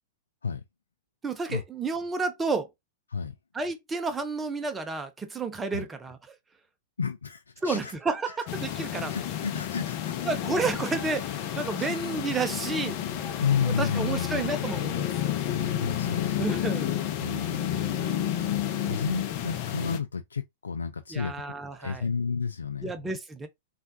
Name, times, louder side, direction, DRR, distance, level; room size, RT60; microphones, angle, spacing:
voice 1, 1.2-2.7 3.5-6.4 7.6-9.2 10.2-13.0 13.7-15.1 16.4-16.9 18.8-19.0 21.1-22.0 22.8-23.5, right 4 dB, 15° right, 0.7 m, -31 dB
voice 2, 7.0-7.9 9.1-10.2 11.8-11.9 13.4-14.5 15.8-16.7 17.2-21.3 21.8-22.9, left 6 dB, 85° left, 0.3 m, -31 dB
sound 1, 8.5-20.0, left 11 dB, 45° left, 0.7 m, -31 dB
3.3 x 2.4 x 2.7 m
hypercardioid pair, 110°, 0 cm